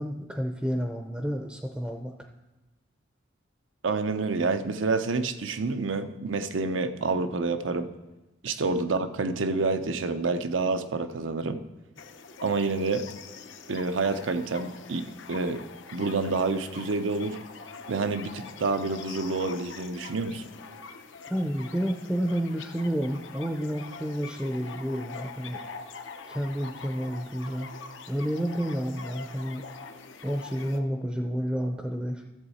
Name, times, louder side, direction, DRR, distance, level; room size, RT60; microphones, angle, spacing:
voice 1, 0.0-2.1 21.3-25.6 26.3-27.7 28.1-29.6 30.2-32.2, equal, 5° right, 3 dB, 0.5 m, -30 dB
voice 2, 3.8-7.9 8.4-11.6 12.4-13.0 13.7-15.6 15.9-17.4 17.9-20.4, right 3 dB, 90° right, 9 dB, 0.6 m, -28 dB
sound 1, 12.0-30.8, left 5 dB, 80° left, 0.7 m, -44 dB
13.0 x 7.2 x 4.2 m, 1.1 s
head